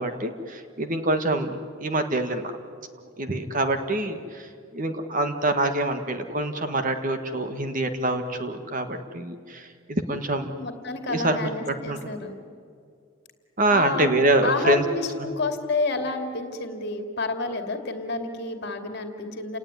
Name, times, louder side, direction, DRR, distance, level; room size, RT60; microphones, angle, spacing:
voice 1, 0.0-2.5 3.2-10.5 11.1-11.4 11.8-12.1 13.6-14.8 15.2-15.3, right 1 dB, 40° right, 7 dB, 1.6 m, -25 dB
voice 2, 10.6-12.4 13.7-14.1 14.4-19.6, left 3 dB, 50° left, 5 dB, 2.6 m, -29 dB
29.5 x 18.5 x 9.7 m, 2.3 s
head